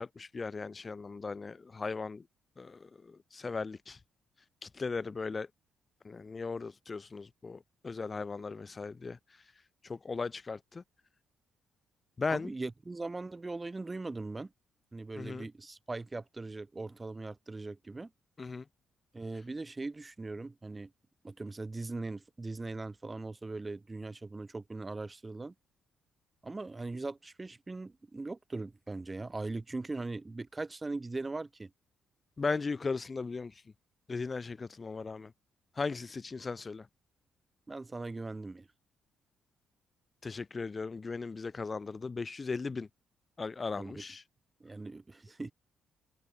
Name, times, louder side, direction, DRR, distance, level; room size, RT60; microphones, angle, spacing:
voice 1, 0.0-2.2 2.6-4.0 4.6-5.5 6.0-9.2 9.8-10.8 12.2-12.5 15.2-15.4 18.4-18.6 32.4-33.5 34.1-35.3 35.8-36.8 40.2-42.9 43.4-44.2, left 4 dB, 30° left, 1.5 m, -37 dB
voice 2, 12.3-14.5 14.9-18.1 19.1-20.9 21.2-25.5 26.4-31.7 37.7-38.7 43.7-44.0 44.6-45.5, right 3 dB, 20° right, 6.4 m, -40 dB
cardioid pair, 90°, 0 cm